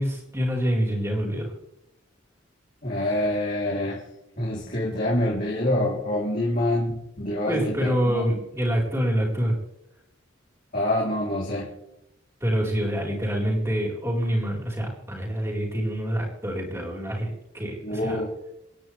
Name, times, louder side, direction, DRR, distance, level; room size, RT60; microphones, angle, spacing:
voice 1, 0.0-1.5 7.5-9.6 12.4-18.2, equal, 15° right, -1 dB, 4.4 m, -26 dB
voice 2, 2.8-4.0 4.4-8.4 10.7-11.7 17.8-18.3, left 1 dB, 45° left, -5 dB, 3.6 m, -26 dB
28.5 x 10.5 x 3.4 m, 0.85 s
head